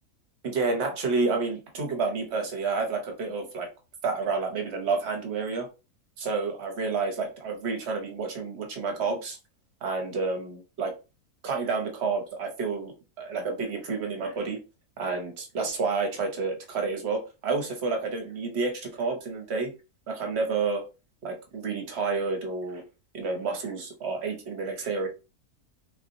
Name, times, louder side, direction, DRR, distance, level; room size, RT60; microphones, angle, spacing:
voice 1, 0.4-3.7 4.0-5.7 6.2-9.4 9.8-10.9 11.4-12.9 13.2-14.6 15.0-19.7 20.1-20.8 21.2-22.8 23.1-25.1, right 4 dB, 50° right, 3 dB, 0.9 m, -29 dB
3.8 x 2.8 x 2.6 m, 0.30 s
omnidirectional pair, 1.6 m